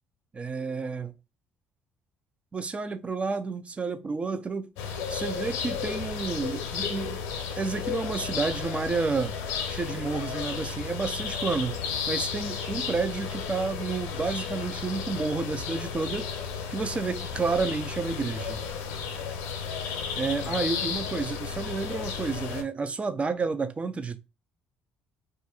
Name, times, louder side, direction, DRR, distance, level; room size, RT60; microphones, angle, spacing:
voice 1, 0.3-1.1 2.5-4.7 5.1-7.2 7.6-9.4 9.7-11.8 12.1-16.3 16.7-18.6 20.2-24.2, right 4 dB, 25° right, 0.5 m, -30 dB
sound 1, 4.8-22.6, left 6 dB, 85° left, 0.6 m, -33 dB
2.5 x 2.4 x 4.1 m
supercardioid pair, 90°, 4 cm